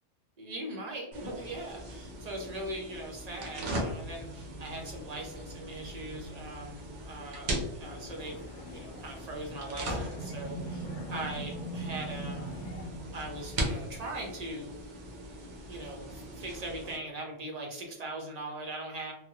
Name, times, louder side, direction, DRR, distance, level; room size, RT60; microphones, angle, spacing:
voice 1, 0.4-8.4 8.7-12.6 13.1-14.8 15.7-19.1, right 1 dB, 40° right, -1 dB, 0.7 m, -40 dB
sound 1, 1.1-17.0, right 1 dB, 70° right, 1.0 m, -39 dB
sound 2, 7.9-12.9, left 3 dB, 70° left, 0.8 m, -51 dB
3.3 x 2.0 x 2.8 m, 0.84 s
omnidirectional pair, 1.3 m